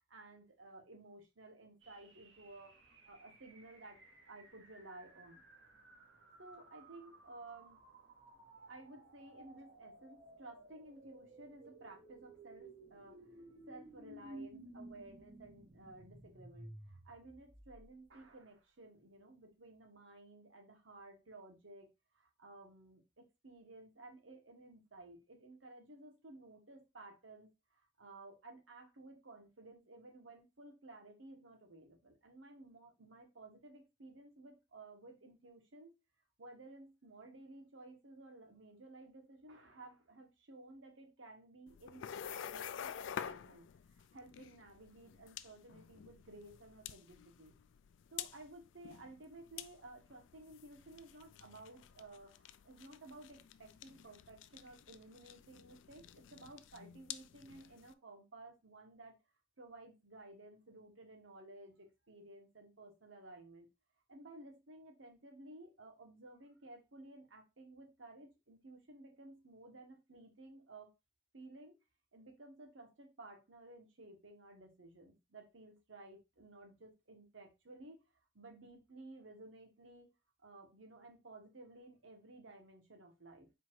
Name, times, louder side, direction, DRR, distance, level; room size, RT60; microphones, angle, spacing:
voice 1, 0.1-4.0 4.3-5.4 6.4-7.8 8.5-36.0 36.4-47.6 48.1-59.1 59.6-63.7 64.1-70.9 71.3-71.8 72.1-78.0 78.3-80.1 80.4-83.5, right 2 dB, 90° right, 3 dB, 1.3 m, -56 dB
sound 1, 1.8-18.1, right 1 dB, 70° right, 1.6 m, -57 dB
sound 2, 41.7-57.9, left 9 dB, 80° left, 0.3 m, -49 dB
4.3 x 2.5 x 4.6 m, 0.24 s
head